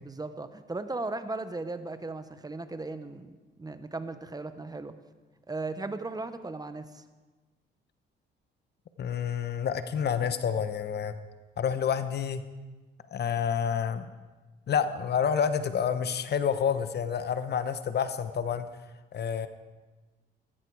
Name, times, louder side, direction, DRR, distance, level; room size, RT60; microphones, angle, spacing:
voice 1, 0.0-4.9 5.5-7.0, right 3 dB, 20° right, 10 dB, 1.0 m, -37 dB
voice 2, 9.0-11.1 11.6-12.4 13.1-14.1 14.7-18.7 19.1-19.5, left 7 dB, 55° left, 11 dB, 1.0 m, -28 dB
16.0 x 15.0 x 4.8 m, 1.3 s
cardioid pair, 90°, 20 cm